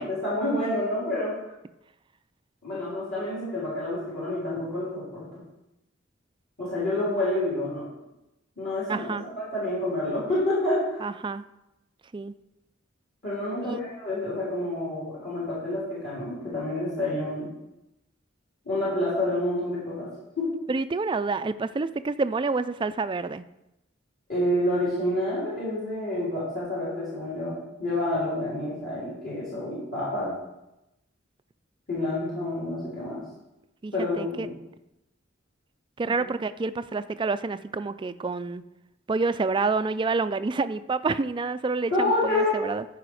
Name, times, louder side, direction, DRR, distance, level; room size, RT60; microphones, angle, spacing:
voice 1, 0.0-1.3 2.6-5.3 6.6-7.8 8.6-11.0 13.2-17.5 18.7-20.1 20.4-20.5 24.3-30.3 31.9-33.2 33.9-34.5 36.0-36.2 41.9-42.6, left 1 dB, 50° left, -9 dB, 4.0 m, -28 dB
voice 2, 8.9-9.2 11.0-11.4 12.1-12.3 13.6-13.8 20.7-23.4 33.8-34.5 36.0-38.6 39.1-42.8, right 3 dB, 25° right, 12 dB, 0.3 m, -28 dB
14.0 x 5.0 x 4.8 m, 0.91 s
head